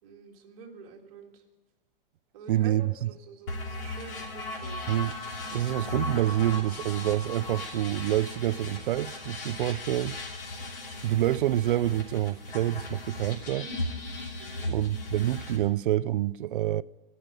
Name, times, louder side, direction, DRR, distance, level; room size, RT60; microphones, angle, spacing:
voice 1, 0.0-1.4 2.3-4.9 14.4-14.7, right 6 dB, 35° right, 1.8 m, -47 dB
voice 2, 2.5-3.1 4.9-5.1 5.5-10.2 11.0-13.7 14.7-16.8, right 13 dB, 65° right, 0.4 m, -27 dB
sound 1, 3.5-15.6, left 2 dB, 70° left, 3.0 m, -37 dB
18.0 x 6.7 x 6.7 m
supercardioid pair, 175°, 29 cm